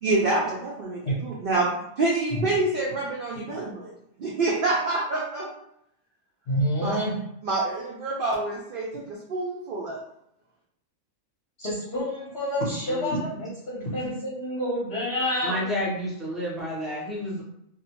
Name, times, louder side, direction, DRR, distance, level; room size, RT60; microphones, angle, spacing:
voice 1, 0.0-3.9 4.2-5.5 6.8-7.0 7.4-10.0, right 2 dB, 75° right, -3 dB, 0.5 m, -27 dB
voice 2, 6.5-7.2 11.6-15.7, equal, 50° left, -7 dB, 0.9 m, -28 dB
voice 3, 12.9-13.2 15.4-17.4, equal, ahead, -7 dB, 0.5 m, -30 dB
2.6 x 2.0 x 2.8 m, 0.77 s
omnidirectional pair, 1.4 m